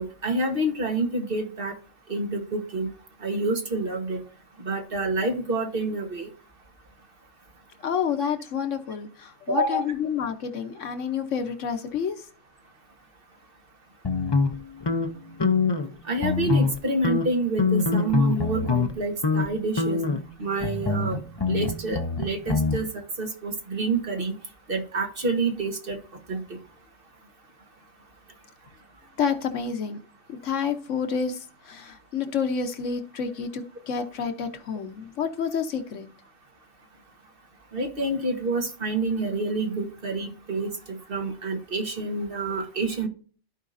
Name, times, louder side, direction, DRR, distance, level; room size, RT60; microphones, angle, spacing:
voice 1, 0.0-1.7 2.1-2.9 3.2-4.2 4.6-6.3 9.5-9.8 16.0-20.0 20.4-21.2 21.5-22.9 23.2-24.4 24.7-26.0 26.3-26.6 37.7-43.1, right 2 dB, 50° right, 4 dB, 1.6 m, -28 dB
voice 2, 7.8-12.3 29.2-30.0 30.3-36.1, left 6 dB, 85° left, 7 dB, 1.3 m, -29 dB
sound 1, 14.0-15.9 16.2-16.8 17.0-18.9 19.2-19.5 19.8-22.8, left 4 dB, 25° left, 0.6 m, -25 dB
14.0 x 5.0 x 2.6 m, 0.40 s
omnidirectional pair, 1.2 m